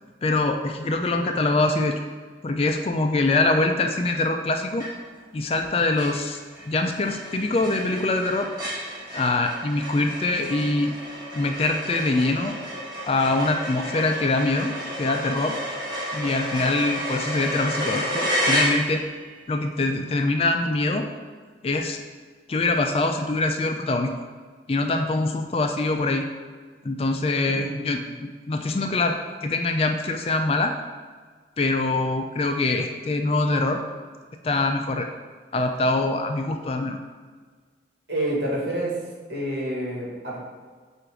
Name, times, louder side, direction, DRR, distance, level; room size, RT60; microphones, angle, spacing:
voice 1, 0.2-2.0 2.4-4.9 5.3-6.4 6.7-8.5 9.1-10.9 11.3-12.6 13.1-15.6 16.1-19.1 19.5-21.1 21.6-22.0 22.5-24.1 24.7-26.3 26.8-30.7 31.6-33.8 34.4-35.1 35.5-37.0, left 2 dB, 30° left, 5 dB, 0.3 m, -24 dB
sound 1, 4.8-5.2 5.6-5.7 6.0-19.2, equal, 25° right, 1.5 m, -31 dB
voice 2, 27.5-28.0 38.1-39.0 39.3-40.4, right 1 dB, 65° right, -4 dB, 1.7 m, -28 dB
7.6 x 2.6 x 4.8 m, 1.5 s
head